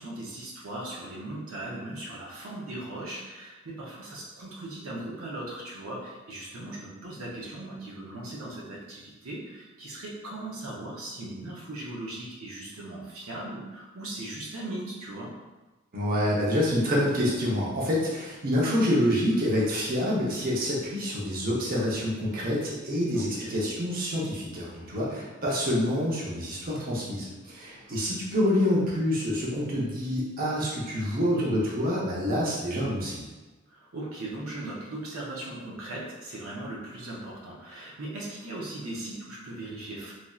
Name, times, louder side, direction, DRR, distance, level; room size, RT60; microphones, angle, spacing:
voice 1, 0.0-15.3 23.1-23.6 24.9-25.2 27.8-28.3 33.7-40.1, right 1 dB, 85° right, -4 dB, 0.6 m, -38 dB
voice 2, 15.9-33.2, equal, 45° right, -5 dB, 0.7 m, -27 dB
3.1 x 2.5 x 2.3 m, 1.2 s
head